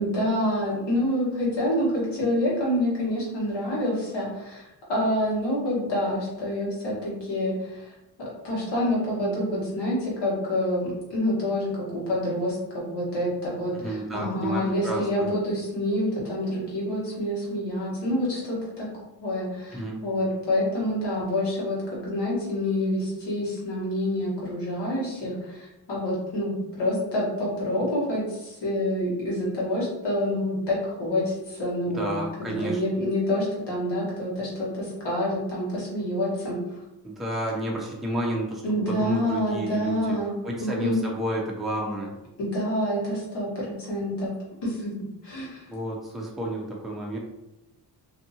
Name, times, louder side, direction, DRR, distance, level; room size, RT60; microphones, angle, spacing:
voice 1, 0.0-7.9 8.2-18.9 19.2-36.8 38.6-41.0 42.4-44.3 44.6-44.9 45.2-45.6, left 1 dB, 80° left, -6 dB, 1.3 m, -27 dB
voice 2, 13.8-15.3 19.7-20.0 31.9-32.8 37.0-40.2 40.4-42.1 45.7-47.2, right 1 dB, ahead, -2 dB, 0.4 m, -31 dB
2.7 x 2.5 x 2.7 m, 0.93 s
wide cardioid pair, 135°, 41 cm